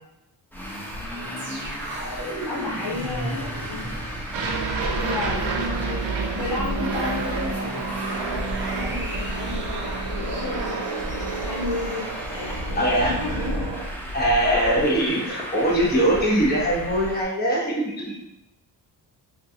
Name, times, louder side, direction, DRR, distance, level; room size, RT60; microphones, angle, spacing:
Traffic noise roadway noise, 0.5-17.2, equal, 5° left, 0.6 m, -34 dB
voice 1, 1.1-1.7 2.4-3.8 4.7-6.1 6.3-7.8 8.1-13.6 14.4-14.8 15.2-15.3 15.9-16.1, left 3 dB, 70° left, -5 dB, 1.3 m, -32 dB
sound 1, 1.4-12.5 12.9-13.0, right 3 dB, 25° right, 0.8 m, -35 dB
Aircraft, 4.3-13.8, right 4 dB, 80° right, 0.7 m, -31 dB
voice 2, 12.7-13.4 14.1-18.0, right 1 dB, 20° left, -4 dB, 1.0 m, -22 dB
3.7 x 2.6 x 2.8 m, 0.84 s
cardioid pair, 90°, 44 cm